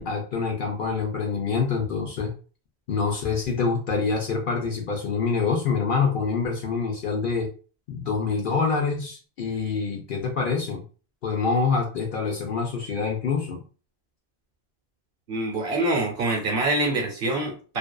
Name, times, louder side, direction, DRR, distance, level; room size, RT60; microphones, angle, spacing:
voice 1, 0.0-2.3 2.9-7.5 7.9-10.8 11.2-13.6, left 5 dB, 60° left, 0 dB, 0.7 m, -26 dB
voice 2, 15.3-17.8, right 2 dB, 60° right, 1 dB, 0.8 m, -25 dB
2.5 x 2.2 x 2.2 m, 0.37 s
omnidirectional pair, 1.1 m